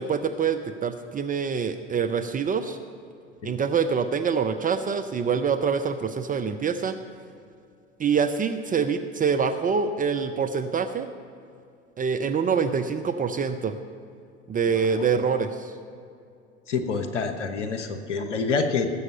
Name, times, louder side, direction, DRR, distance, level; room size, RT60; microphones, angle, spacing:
voice 1, 0.0-2.8 3.4-7.0 8.0-11.1 12.0-13.8 14.5-15.7, right 6 dB, 25° right, 8 dB, 0.6 m, -25 dB
voice 2, 14.7-15.1 16.7-18.9, left 4 dB, 75° left, 7 dB, 1.2 m, -27 dB
18.5 x 7.9 x 5.4 m, 2.4 s
figure-of-eight pair, 70°, 36 cm